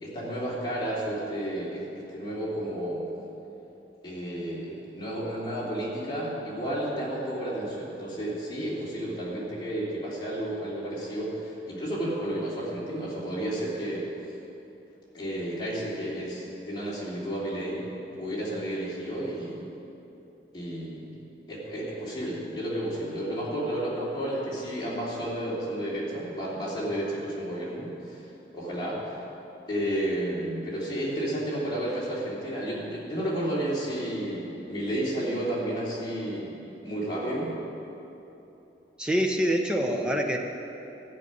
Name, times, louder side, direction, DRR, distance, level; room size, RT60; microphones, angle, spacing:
voice 1, 0.0-3.0 4.0-14.1 15.1-17.8 18.2-19.6 20.5-29.2 29.7-36.6 36.8-37.6, right 1 dB, 25° left, -8 dB, 3.1 m, -32 dB
voice 2, 39.0-40.4, equal, 5° right, 2 dB, 0.8 m, -25 dB
13.0 x 6.7 x 9.4 m, 3.0 s
head